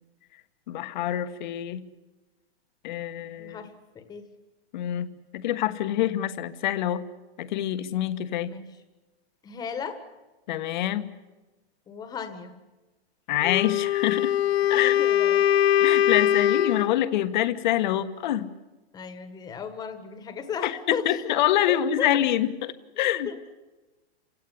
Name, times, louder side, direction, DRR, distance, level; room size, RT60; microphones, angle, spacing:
voice 1, 0.7-1.9 2.8-3.6 4.7-7.1 7.4-8.5 10.5-11.1 13.3-14.3 14.7-15.0 15.8-18.5 20.6-23.3, left 12 dB, 45° left, 11 dB, 1.4 m, -26 dB
voice 2, 3.4-4.3 8.4-8.6 9.4-10.0 11.9-12.5 14.7-15.5 18.9-21.3 21.7-22.1 23.0-23.4, left 6 dB, 10° left, 10 dB, 1.7 m, -36 dB
Wind instrument woodwind instrument, 13.4-17.0, left 11 dB, 70° left, 1.0 m, -22 dB
29.0 x 17.0 x 9.9 m, 1.1 s
supercardioid pair, 170°, 32 cm